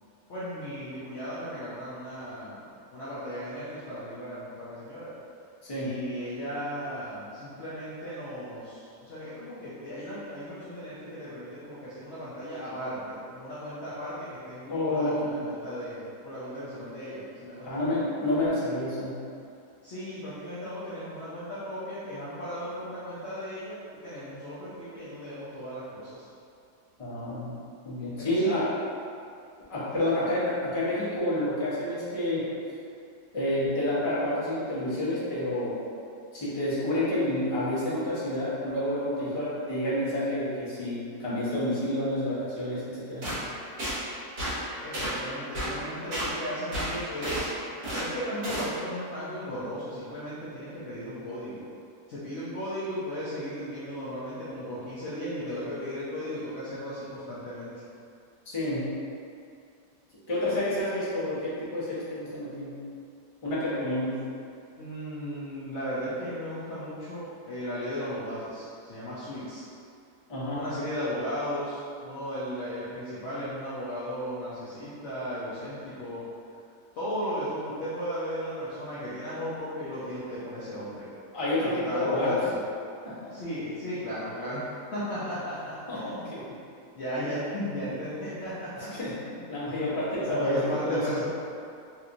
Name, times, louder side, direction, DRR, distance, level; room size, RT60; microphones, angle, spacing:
voice 1, 0.3-2.6 2.9-5.1 5.8-17.9 19.8-26.2 28.1-28.5 29.9-30.1 44.8-47.5 48.0-51.6 52.1-57.8 64.8-69.6 70.5-76.3 76.9-81.1 81.6-82.6 83.3-86.3 86.9-89.4 90.2-91.3, equal, 65° left, -10 dB, 0.7 m, -36 dB
voice 2, 5.6-5.9 14.7-15.3 17.6-19.2 27.0-27.5 27.8-28.7 29.7-32.5 33.3-35.8 36.3-43.3 58.5-58.9 60.3-62.8 63.4-64.2 70.3-70.6 81.3-82.4 83.0-83.3 85.9-86.4 88.7-89.2 89.5-91.0, left 1 dB, 25° left, -11 dB, 0.7 m, -29 dB
sound 1, 43.2-43.4 43.8-44.0 44.4-44.6 44.9-45.2 45.5-45.7 46.1-46.3 46.7-47.5 47.8-48.1 48.4-48.7, equal, 40° right, 1.1 m, -31 dB
3.2 x 3.0 x 2.5 m, 2.5 s
omnidirectional pair, 1.8 m